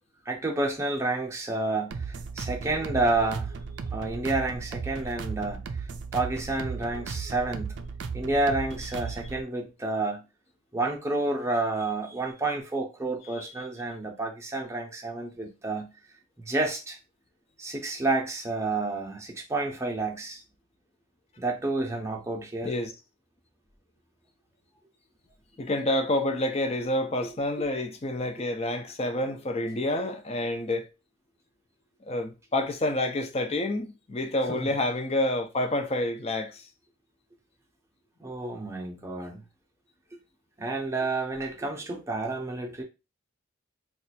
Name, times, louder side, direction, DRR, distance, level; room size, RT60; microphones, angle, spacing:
voice 1, 0.3-3.5 3.9-5.6 6.1-7.8 8.1-10.2 10.7-15.9 16.5-17.0 17.6-20.4 21.4-22.7 34.5-34.7 38.2-39.4 40.6-42.8, right 2 dB, 15° right, 0.7 m, -30 dB
sound 1, 1.9-9.4, right 5 dB, 60° right, 0.4 m, -36 dB
voice 2, 13.3-13.7 22.6-22.9 25.6-30.9 32.0-36.6, left 1 dB, 30° left, 0.5 m, -28 dB
2.6 x 2.4 x 4.1 m
head